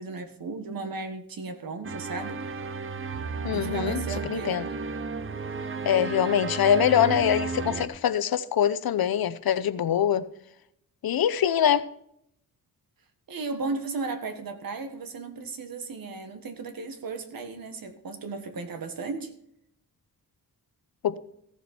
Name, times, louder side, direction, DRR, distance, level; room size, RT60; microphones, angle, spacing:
voice 1, 0.0-2.6 3.5-4.6 13.3-19.3, right 3 dB, 65° right, 1.7 m, -35 dB
sound 1, 1.8-7.9, right 5 dB, 35° right, 0.8 m, -33 dB
voice 2, 3.4-4.7 5.8-10.3 11.0-11.9 21.0-21.2, left 9 dB, 75° left, 0.8 m, -24 dB
15.5 x 7.3 x 4.3 m
wide cardioid pair, 140°, 36 cm